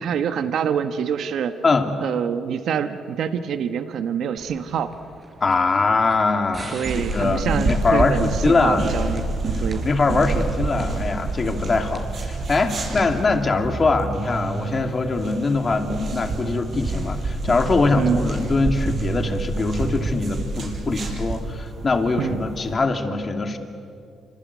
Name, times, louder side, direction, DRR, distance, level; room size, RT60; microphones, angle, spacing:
voice 1, 0.0-1.5 2.0-4.9 6.7-9.2 9.6-9.8 17.9-18.2 22.2-22.4, right 8 dB, 70° right, 9 dB, 1.2 m, -25 dB
voice 2, 1.6-1.9 5.4-8.9 9.5-23.6, left 3 dB, 35° left, 4 dB, 2.8 m, -22 dB
sound 1, 4.4-14.9, right 2 dB, 35° right, 5.1 m, -42 dB
sound 2, 6.8-22.7, right 3 dB, 55° right, 6.1 m, -28 dB
27.5 x 25.0 x 8.4 m, 2.5 s
cardioid pair, 90°, 0 cm